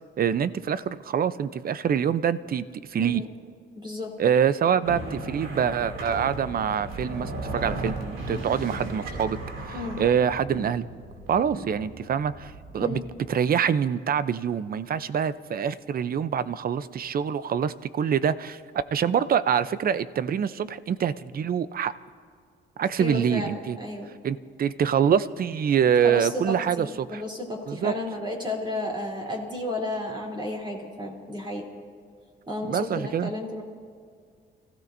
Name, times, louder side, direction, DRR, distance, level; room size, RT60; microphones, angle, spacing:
voice 1, 0.2-3.2 4.2-9.4 10.0-10.9 11.3-13.0 13.3-18.6 18.9-21.9 22.8-23.8 24.2-27.2 27.7-27.9 32.6-33.3, right 8 dB, 50° right, 14 dB, 0.6 m, -25 dB
voice 2, 3.7-4.2 9.7-10.0 12.8-13.0 23.0-24.1 26.0-31.6 32.5-33.6, left 1 dB, 25° right, 0 dB, 3.5 m, -32 dB
sound 1, 4.8-13.3, right 2 dB, 80° right, 2.8 m, -36 dB
29.0 x 16.0 x 2.7 m, 2.1 s
cardioid pair, 90°, 20 cm